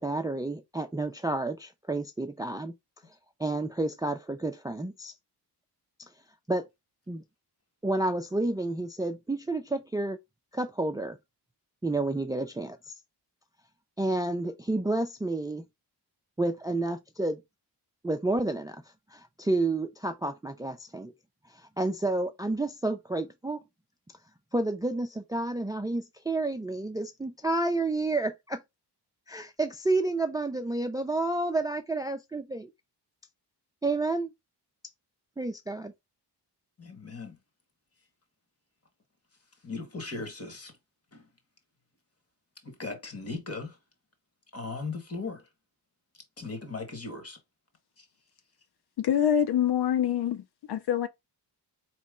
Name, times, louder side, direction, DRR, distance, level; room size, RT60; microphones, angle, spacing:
voice 1, 0.0-2.7 3.4-5.1 6.0-6.1 6.5-6.7 7.1-7.2 7.8-10.2 10.5-11.2 11.8-12.9 14.0-15.6 16.4-17.4 18.0-18.8 19.1-21.1 21.5-23.6 24.5-28.6 29.3-32.7 33.8-34.3 35.4-35.9, right 2 dB, 10° right, 0.4 m, -30 dB
voice 2, 36.8-37.4 39.6-40.8 41.1-41.3 42.6-43.8 44.5-45.5 46.4-47.4 48.0-48.1, left 3 dB, 35° left, 1.4 m, -38 dB
voice 3, 49.0-51.1, left 9 dB, 65° left, 0.5 m, -25 dB
4.2 x 3.1 x 3.6 m
wide cardioid pair, 115°, 41 cm